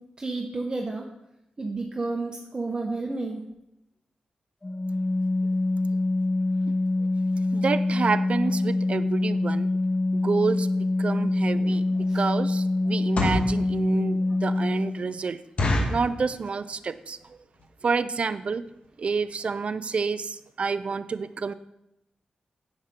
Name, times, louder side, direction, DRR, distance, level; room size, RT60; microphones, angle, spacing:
voice 1, 0.2-1.0 1.6-3.4 12.1-12.2, right 3 dB, 30° right, 1 dB, 1.0 m, -31 dB
Organ, 4.6-15.2, left 2 dB, 15° left, 0.6 m, -25 dB
voice 2, 7.5-9.7 10.1-15.4 15.9-17.2 17.8-18.7 19.0-21.5, right 5 dB, 50° right, 14 dB, 0.5 m, -28 dB
sound 1, 11.4-11.5 12.0-12.2 12.9-13.6 14.1-14.2 14.5-14.6 15.0-15.1 15.6-16.1 16.7-17.0 17.2-17.3 17.6-17.8 18.4-18.5 18.7-18.9 19.2-19.3 19.5-19.6, left 2 dB, 55° left, 1.5 m, -26 dB
9.9 x 8.0 x 3.7 m, 0.85 s
wide cardioid pair, 110°, 3 cm